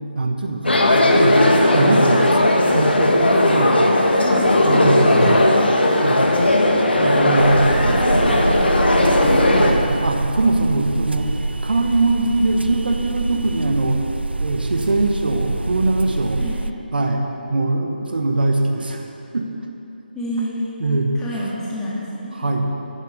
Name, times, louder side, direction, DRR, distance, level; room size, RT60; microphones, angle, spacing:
voice 1, 0.1-2.4 2.7-4.0 4.7-5.4 6.0-6.3 7.0-8.5 9.5-14.0 14.4-16.4 16.9-19.1 19.3-19.5 20.8-21.1 22.3-22.7, right 2 dB, 65° right, 3 dB, 1.3 m, -22 dB
sound 1, 0.6-9.7, left 1 dB, 75° left, 1.5 m, -16 dB
voice 2, 4.2-5.7 9.1-9.5 16.4-16.6 20.1-20.7 21.2-22.3, left 1 dB, 10° left, -8 dB, 2.2 m, -29 dB
sound 2, 7.4-16.7, right 3 dB, 85° right, 0.5 m, -25 dB
11.5 x 10.0 x 5.6 m, 2.9 s
figure-of-eight pair, 150°, 6 cm